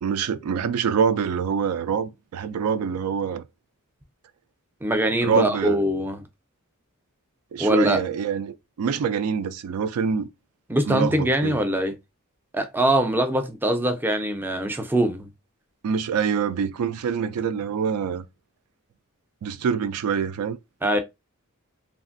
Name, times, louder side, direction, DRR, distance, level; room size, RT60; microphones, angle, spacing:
voice 1, 0.0-3.4 5.2-5.8 7.5-10.3 10.9-11.6 15.8-18.2 19.4-20.6, right 6 dB, 85° right, 0.3 m, -25 dB
voice 2, 4.8-6.2 7.6-8.0 10.7-12.0 12.5-15.3 20.8-21.0, right 1 dB, 10° right, 0.4 m, -23 dB
3.0 x 2.5 x 2.5 m
head